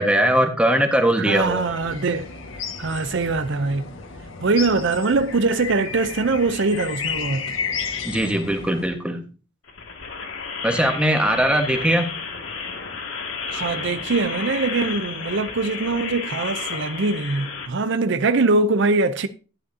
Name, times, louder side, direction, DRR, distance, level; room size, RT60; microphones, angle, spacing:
voice 1, 0.0-1.6 8.0-9.2 10.6-12.1, right 1 dB, 5° right, 1.4 m, -20 dB
voice 2, 1.2-2.3 2.8-3.8 4.4-7.5 13.5-19.3, right 3 dB, 65° right, 0.6 m, -22 dB
sound 1, 1.4-8.9, left 6 dB, 75° left, 1.6 m, -33 dB
sound 2, 9.7-17.7, left 5 dB, 90° left, 2.2 m, -32 dB
11.0 x 11.0 x 2.8 m
head